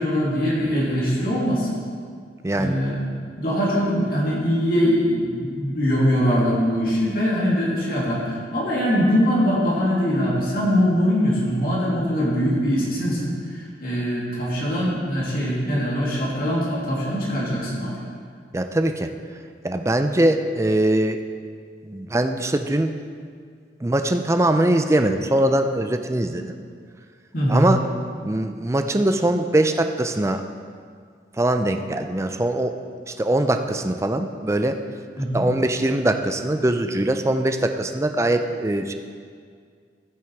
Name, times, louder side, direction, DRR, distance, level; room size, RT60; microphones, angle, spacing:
voice 1, 0.0-1.7 2.5-3.0 3.4-17.9 27.3-27.7 35.2-35.4, equal, 55° left, -5 dB, 2.7 m, -22 dB
voice 2, 2.4-2.8 18.5-19.1 19.6-21.2 21.8-22.9 23.8-26.6 27.5-27.8 28.2-30.4 31.4-32.7 33.1-34.8 35.3-38.9, right 1 dB, 15° right, 7 dB, 0.4 m, -22 dB
14.0 x 6.2 x 4.6 m, 2.1 s
head